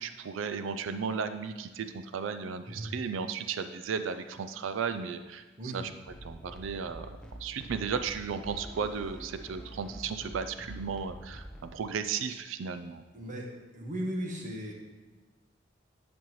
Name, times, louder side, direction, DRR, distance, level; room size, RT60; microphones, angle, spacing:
voice 1, 0.0-5.4 5.7-5.8 6.2-7.1 7.4-13.0, right 6 dB, 85° right, 10 dB, 0.4 m, -35 dB
sound 1, 6.1-11.7, equal, 5° left, 0.7 m, -46 dB
voice 2, 13.1-13.5 13.7-14.7, equal, 40° right, -1 dB, 1.2 m, -36 dB
10.0 x 5.2 x 3.1 m, 1.2 s
head